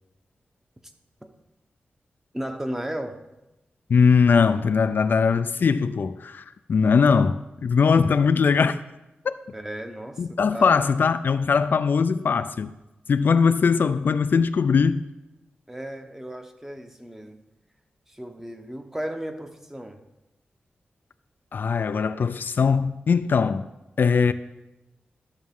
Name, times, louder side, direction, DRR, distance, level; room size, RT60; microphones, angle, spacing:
voice 1, 2.3-3.2 9.5-10.9 15.7-17.4 18.1-20.0, right 1 dB, 10° right, 1.0 m, -35 dB
voice 2, 3.9-8.8 9.2-9.4 10.2-12.7 13.1-15.0 21.5-23.7 24.0-24.3, left 5 dB, 65° left, 0.4 m, -20 dB
12.5 x 7.2 x 3.7 m
wide cardioid pair, 80°, 4 cm